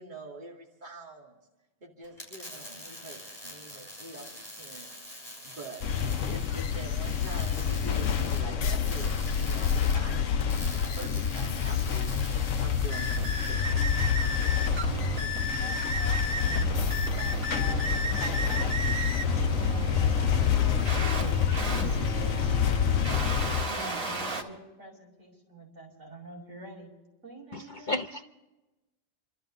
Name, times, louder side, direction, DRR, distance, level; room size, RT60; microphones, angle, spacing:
voice 1, 0.0-1.4 1.8-5.8 6.3-13.9 14.6-15.4, right 2 dB, 35° right, -2 dB, 2.5 m, -45 dB
sound 1, 2.0-13.5, left 1 dB, 30° left, 6.4 m, -45 dB
sound 2, 5.8-23.7, left 8 dB, 70° left, 1.1 m, -28 dB
sound 3, 12.9-24.4, right 2 dB, 80° right, 2.3 m, -33 dB
voice 2, 15.5-18.9 19.2-23.3 23.6-26.9 27.2-28.1, right 1 dB, 65° right, -2 dB, 6.0 m, -47 dB
voice 3, 27.5-28.2, left 2 dB, 45° left, 6 dB, 0.7 m, -33 dB
28.5 x 13.0 x 3.8 m, 1.0 s
omnidirectional pair, 1.4 m